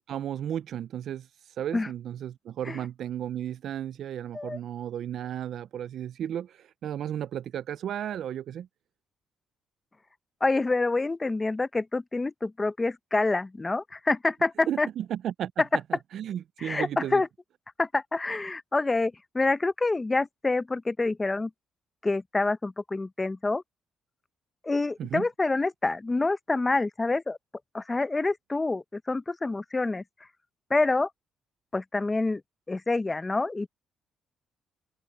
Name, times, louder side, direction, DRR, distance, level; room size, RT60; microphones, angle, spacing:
voice 1, 0.0-8.7 14.7-15.6 15.9-17.2 25.0-25.2, right 10 dB, 70° right, 0.4 m, -34 dB
voice 2, 10.4-14.9 16.6-17.3 17.8-21.5 22.0-23.6 24.6-27.4 27.7-30.0 30.7-31.1 31.7-32.4 32.7-33.7, left 3 dB, 20° left, 0.9 m, -27 dB
cardioid pair, 90°, 0 cm